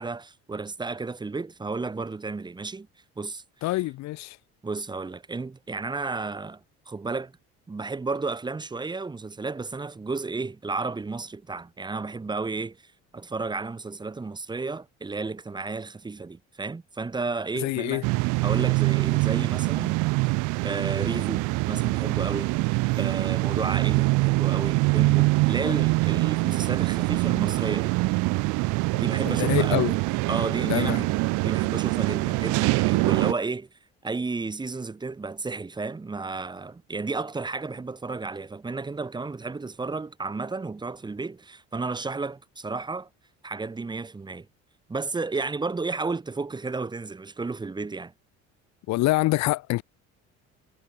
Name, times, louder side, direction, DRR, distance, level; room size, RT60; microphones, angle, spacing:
voice 1, 0.0-2.9 3.2-3.4 4.6-7.3 7.7-18.0 18.4-19.9 20.6-27.9 28.9-29.9 30.3-31.1 31.4-33.7 34.0-43.1 43.4-44.5 44.9-48.1, right 3 dB, 15° right, 2.5 m, -32 dB
voice 2, 3.6-4.4 17.6-18.0 29.3-29.9 30.7-31.1 48.9-49.8, left 18 dB, 70° left, 1.5 m, -25 dB
sound 1, 18.0-33.3, right 25 dB, 90° right, 1.1 m, -24 dB
cardioid pair, 150°, 29 cm